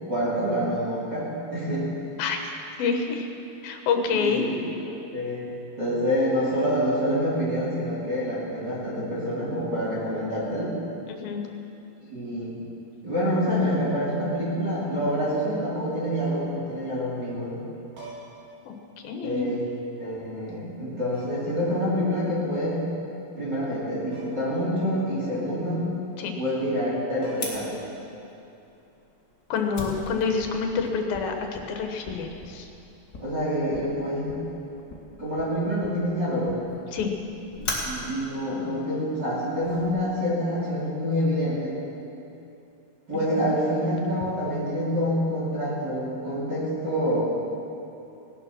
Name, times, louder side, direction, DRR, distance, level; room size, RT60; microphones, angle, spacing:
voice 1, 0.1-1.9 4.1-4.6 4.8-5.4 5.8-10.7 12.1-12.5 13.0-17.6 19.2-19.6 20.0-22.8 23.4-25.9 26.4-27.7 33.2-34.4 35.2-36.6 37.6-41.8 43.1-47.2, equal, 30° right, -7 dB, 2.9 m, -27 dB
voice 2, 2.8-3.3 3.6-4.5 11.1-11.4 18.7-18.8 19.0-19.5 26.2-26.4 29.5-32.7 36.9-37.1 43.3-43.5, left 5 dB, 75° left, 4 dB, 3.0 m, -27 dB
sound 1, 18.0-18.5 19.8-19.9 21.1-21.6 24.1-24.6 24.9-25.0 26.8-26.9 27.2-27.8 29.8-30.0, right 2 dB, 75° right, 5.4 m, -45 dB
Fire, 27.4-39.9, left 2 dB, 35° left, 2.4 m, -40 dB
18.0 x 11.0 x 6.1 m, 2.8 s
omnidirectional pair, 4.2 m